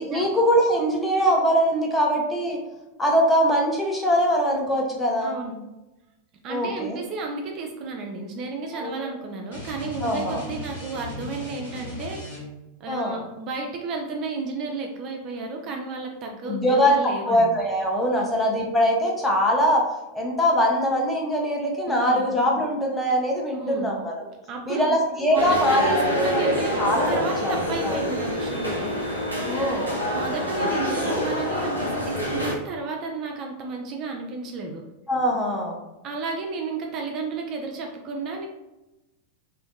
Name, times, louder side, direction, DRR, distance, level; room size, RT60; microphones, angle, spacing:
voice 1, 0.0-2.6 3.0-5.3 6.5-7.0 8.7-8.9 10.0-10.4 12.9-13.2 16.4-17.0 17.3-19.8 20.1-24.2 24.7-28.0 29.5-29.9 35.1-35.8, equal, 10° left, -1 dB, 0.6 m, -22 dB
voice 2, 5.2-5.6 6.4-12.5 12.8-17.5 18.2-18.3 21.9-22.3 23.5-24.0 24.5-25.0 25.3-28.8 30.1-34.8 36.0-38.5, right 3 dB, 35° right, 1 dB, 0.3 m, -32 dB
sound 1, 9.5-12.7, left 1 dB, 60° left, 1.1 m, -37 dB
sound 2, 25.3-32.5, equal, 85° left, 0.5 m, -27 dB
2.5 x 2.1 x 2.5 m, 1.0 s
figure-of-eight pair, 90°, 0 cm